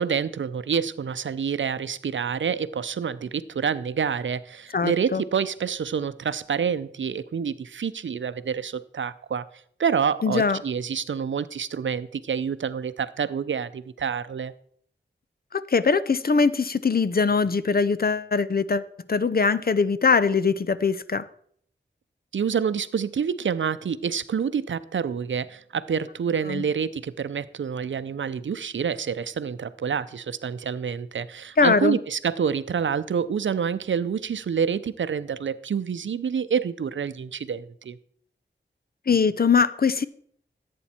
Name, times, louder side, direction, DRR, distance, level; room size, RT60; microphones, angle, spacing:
voice 1, 0.0-9.4 9.8-14.5 22.3-38.0, right 7 dB, 85° right, 0.6 m, -27 dB
voice 2, 4.7-5.2 10.2-10.6 15.5-18.8 19.1-21.2 26.5-26.7 31.6-32.0 39.1-40.1, left 5 dB, 55° left, 0.7 m, -22 dB
15.5 x 8.5 x 4.3 m
wide cardioid pair, 60°, 19 cm